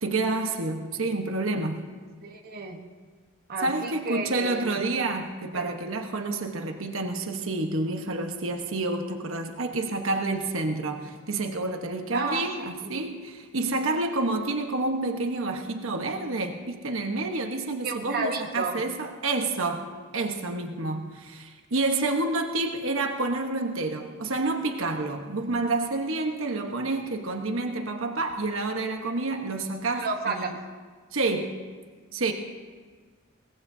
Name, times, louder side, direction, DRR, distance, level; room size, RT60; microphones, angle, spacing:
voice 1, 0.0-1.8 3.6-19.9 20.1-30.5 31.1-31.6 32.1-32.3, right 2 dB, 65° right, 4 dB, 1.2 m, -29 dB
voice 2, 2.2-2.8 3.5-4.8 5.5-5.8 12.1-12.4 12.8-12.9 17.8-18.8 29.8-30.4, right 3 dB, 45° right, 1 dB, 1.1 m, -32 dB
22.5 x 18.5 x 2.7 m, 1.5 s
head